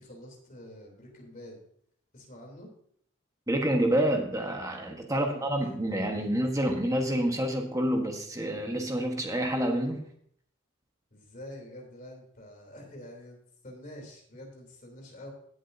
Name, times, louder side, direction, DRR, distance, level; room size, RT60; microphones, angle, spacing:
voice 1, 0.0-1.6 2.1-2.7 5.1-5.8 11.1-15.3, left 1 dB, 40° left, 0 dB, 3.2 m, -47 dB
voice 2, 3.5-10.0, right 1 dB, 15° right, 3 dB, 1.3 m, -28 dB
16.5 x 7.4 x 2.7 m, 0.65 s
head